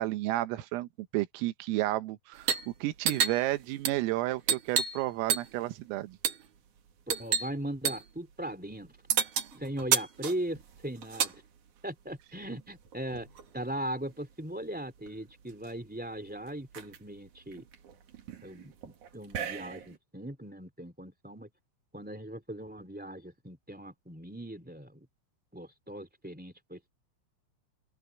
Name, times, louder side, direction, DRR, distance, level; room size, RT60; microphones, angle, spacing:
voice 1, 0.0-6.2, right 17 dB, 80° right, 3.7 m, -32 dB
sound 1, 2.4-2.7 3.0-5.0 5.3-5.7 6.2-6.5 7.1-7.5 7.8-8.1 9.1-11.4 12.4-13.5 14.7-14.8 15.1-15.7 16.2-16.3 16.5-17.0 17.5-20.0, right 8 dB, 55° right, 2.5 m, -32 dB
voice 2, 7.1-8.9 9.5-11.4 11.8-13.3 13.5-17.6 18.4-21.5 21.9-25.1 25.5-26.9, right 1 dB, 5° right, 0.8 m, -39 dB
open air
omnidirectional pair, 6.0 m